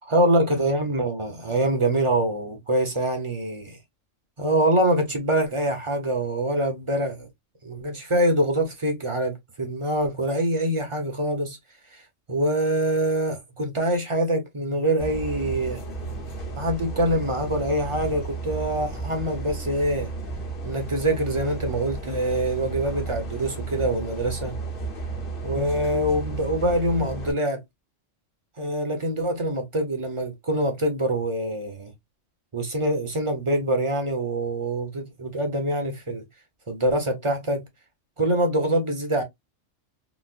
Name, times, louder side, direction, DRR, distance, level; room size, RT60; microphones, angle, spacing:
voice 1, 0.1-3.8 4.4-7.3 7.6-11.6 11.9-12.0 12.3-15.8 16.6-20.1 20.6-24.6 25.4-27.6 28.6-31.9 32.5-36.2 36.7-37.7 38.2-39.2, right 1 dB, 30° right, 0.7 m, -25 dB
sound 1, 15.0-27.3, right 3 dB, 45° left, 1.2 m, -33 dB
4.1 x 2.1 x 2.4 m
omnidirectional pair, 1.3 m